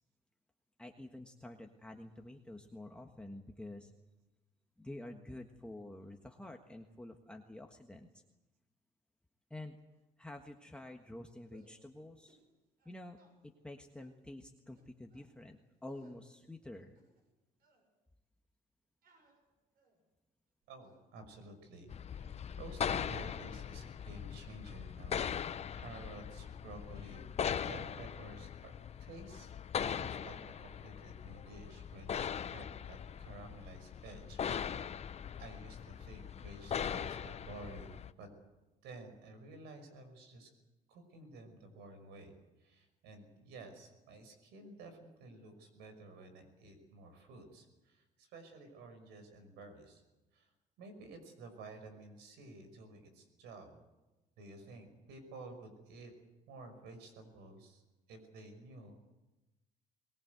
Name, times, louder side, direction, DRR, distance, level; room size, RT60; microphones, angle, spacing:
voice 1, 0.8-3.9 4.8-8.2 9.5-9.8 10.2-12.4 12.8-13.2 13.4-17.0, left 1 dB, 5° left, 3 dB, 1.5 m, -49 dB
sound 1, 11.5-11.8 12.3-12.5 12.8-13.3 14.0-14.2 14.7-15.3 15.9-16.2 16.7-17.3 17.6-17.9 19.0-20.1 20.6-21.1 21.8-22.0 22.4-22.6 23.1-24.4 24.6-24.9 25.8-26.1 26.3-27.1 27.4-27.7, right 3 dB, 60° right, 7.5 m, -68 dB
voice 2, 20.7-28.7 29.0-29.5 29.8-34.9 35.4-38.3 38.8-40.5 40.9-50.0 50.3-50.5 50.8-53.8 54.4-56.1 56.5-57.8 58.1-59.0, right 2 dB, 85° right, 8 dB, 5.7 m, -52 dB
sound 2, 21.9-38.1, left 8 dB, 40° left, 0.8 m, -40 dB
22.5 x 20.0 x 8.1 m, 1.1 s
cardioid pair, 110°, 17 cm